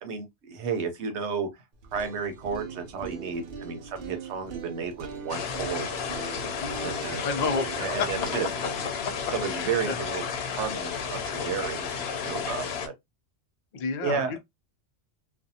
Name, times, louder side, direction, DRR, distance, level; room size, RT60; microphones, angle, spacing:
voice 1, 0.0-1.5 1.9-5.9 6.7-7.2 7.7-8.5 9.3-12.9 14.0-14.3, right 6 dB, 90° right, 1.0 m, -32 dB
sound 1, 1.7-11.8, right 5 dB, 55° right, 0.7 m, -42 dB
sound 2, 5.3-12.9, left 6 dB, 70° left, 0.8 m, -32 dB
voice 2, 6.6-6.9 7.2-8.3 9.0-10.0 13.7-14.4, left 4 dB, 55° left, 0.5 m, -31 dB
2.5 x 2.3 x 2.7 m
omnidirectional pair, 1.1 m